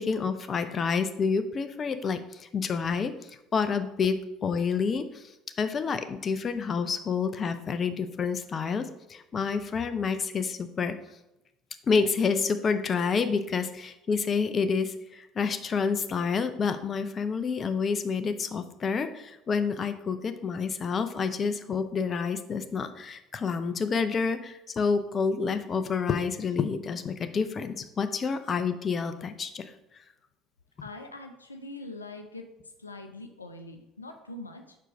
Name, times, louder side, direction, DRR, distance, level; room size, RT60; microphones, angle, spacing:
voice 1, 0.0-3.1 3.5-5.2 5.6-10.9 11.9-29.6, left 5 dB, 35° left, 10 dB, 0.5 m, -28 dB
voice 2, 30.8-32.5 32.8-34.8, left 2 dB, 85° left, 5 dB, 0.5 m, -43 dB
4.6 x 4.5 x 5.0 m, 0.91 s
figure-of-eight pair, 60°, 0 cm